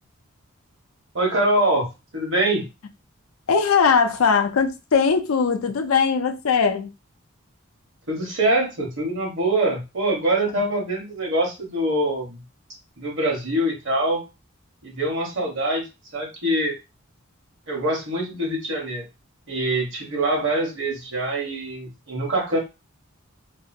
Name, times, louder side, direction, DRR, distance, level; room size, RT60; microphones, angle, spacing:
voice 1, 1.1-2.6 8.1-12.4 13.0-14.2 14.8-15.8 16.1-16.8 17.7-19.0 19.5-22.6, right 1 dB, 65° right, 1.1 m, -24 dB
voice 2, 3.5-6.9 10.6-10.7, left 5 dB, 85° left, 0.5 m, -20 dB
2.7 x 2.4 x 2.6 m
head